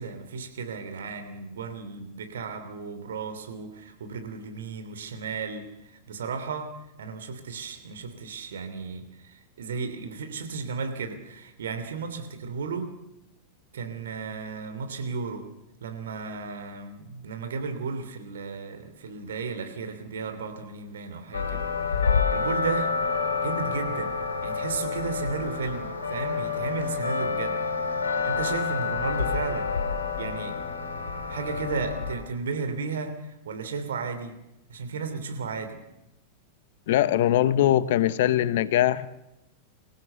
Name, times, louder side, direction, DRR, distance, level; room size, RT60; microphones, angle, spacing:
voice 1, 0.0-6.7 7.0-12.9 13.7-15.5 15.8-22.9 23.4-24.1 24.4-27.6 27.9-29.7 30.2-30.6 31.3-34.3 34.7-35.8, right 5 dB, 65° right, 7 dB, 3.0 m, -34 dB
sound 1, 21.3-32.2, left 5 dB, 70° left, 3.4 m, -28 dB
voice 2, 36.9-39.1, left 12 dB, 55° left, 17 dB, 0.9 m, -21 dB
25.0 x 15.5 x 6.9 m, 0.89 s
figure-of-eight pair, 90°, 0 cm